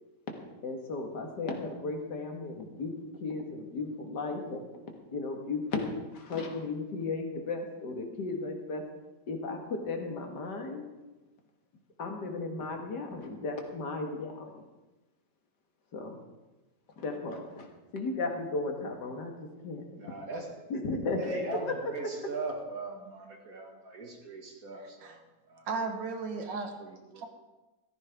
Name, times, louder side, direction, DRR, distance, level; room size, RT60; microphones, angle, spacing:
voice 1, 0.6-4.6 5.1-8.8 9.3-10.9 12.0-14.7 15.9-16.2 17.0-17.7 17.9-19.3 19.6-19.9 20.7-21.4 21.6-21.9, left 3 dB, 70° left, 3 dB, 2.2 m, -35 dB
voice 2, 20.0-20.6 21.2-25.2 25.5-25.7 26.4-27.3, right 3 dB, 50° right, 1 dB, 2.2 m, -40 dB
voice 3, 24.8-25.2 25.7-26.7 27.2-27.3, right 4 dB, 85° right, 5 dB, 2.0 m, -35 dB
14.5 x 14.0 x 3.5 m, 1.1 s
omnidirectional pair, 1.9 m